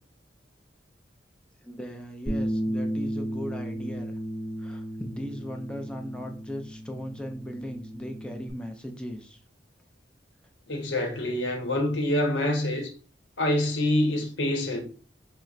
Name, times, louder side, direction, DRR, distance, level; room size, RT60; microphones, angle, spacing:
voice 1, 1.6-4.2 4.6-9.4, equal, 5° left, 0.4 m, -38 dB
Bass guitar, 2.3-8.5, equal, 40° left, 0.8 m, -34 dB
voice 2, 10.7-12.9 13.4-14.8, left 1 dB, 80° left, 0.9 m, -26 dB
5.3 x 2.1 x 2.4 m
head